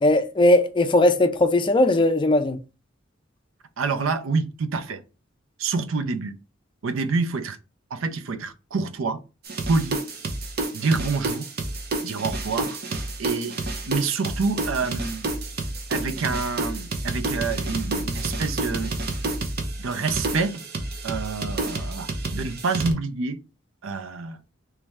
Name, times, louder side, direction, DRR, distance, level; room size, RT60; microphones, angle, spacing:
voice 1, 0.0-2.6, left 1 dB, 25° left, 0.4 m, -19 dB
voice 2, 3.8-5.0 5.6-6.3 6.8-7.6 7.9-9.2 9.7-10.0 10.7-11.5 12.0-12.8 13.2-13.6 13.8-15.3 15.9-18.9 19.8-20.6 21.0-23.4 23.8-24.4, right 4 dB, 85° right, 0.5 m, -27 dB
sound 1, 9.4-22.9, right 2 dB, 50° right, 0.8 m, -29 dB
3.3 x 3.1 x 3.5 m
head